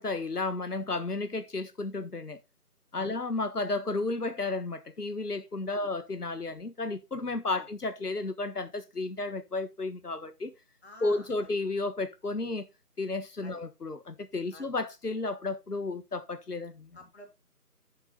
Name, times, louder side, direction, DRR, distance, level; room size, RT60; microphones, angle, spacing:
voice 1, 0.0-2.4 2.9-10.5 11.0-12.6 13.0-17.0, left 3 dB, 80° left, 1.5 m, -33 dB
voice 2, 10.8-11.5 13.4-13.6 14.5-14.7 16.9-17.3, left 1 dB, 45° left, 3.6 m, -50 dB
8.6 x 7.4 x 4.0 m
figure-of-eight pair, 165°, 47 cm